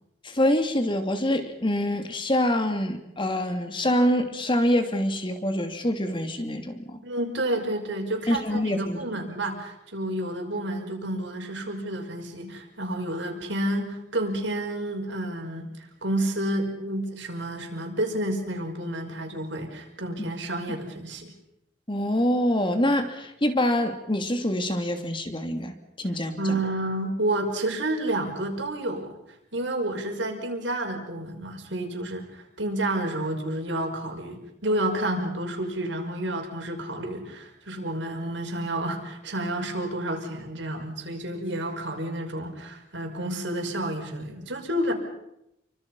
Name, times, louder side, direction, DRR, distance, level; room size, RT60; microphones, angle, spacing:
voice 1, 0.2-7.0 8.3-9.0 21.9-26.6, left 1 dB, 30° left, 6 dB, 2.8 m, -25 dB
voice 2, 7.0-15.7 16.0-21.3 26.4-29.2 29.5-44.9, right 1 dB, 80° right, 2 dB, 5.7 m, -30 dB
30.0 x 24.5 x 5.6 m, 0.83 s
head